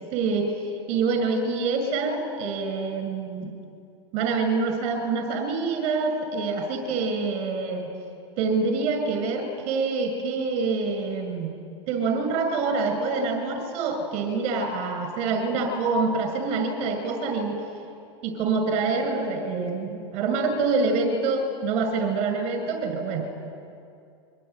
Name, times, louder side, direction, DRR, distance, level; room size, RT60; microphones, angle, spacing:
voice 1, 0.1-0.5 0.9-3.5 4.1-7.9 8.4-11.5 11.9-17.6 18.2-23.3, right 4 dB, 50° right, 6 dB, 6.7 m, -26 dB
25.0 x 24.5 x 9.4 m, 2.5 s
hypercardioid pair, 120°, 15 cm